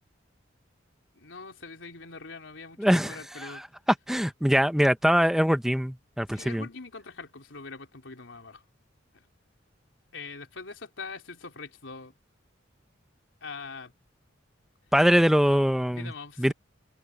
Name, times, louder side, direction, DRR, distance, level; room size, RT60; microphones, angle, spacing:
voice 1, 1.1-3.6 6.3-8.6 9.1-9.2 10.1-12.1 13.4-13.9 15.9-16.5, left 4 dB, 80° left, 3.6 m, -43 dB
voice 2, 2.8-3.7 4.1-6.7 14.9-16.1 16.4-16.5, equal, ahead, 0.8 m, -23 dB
open air
head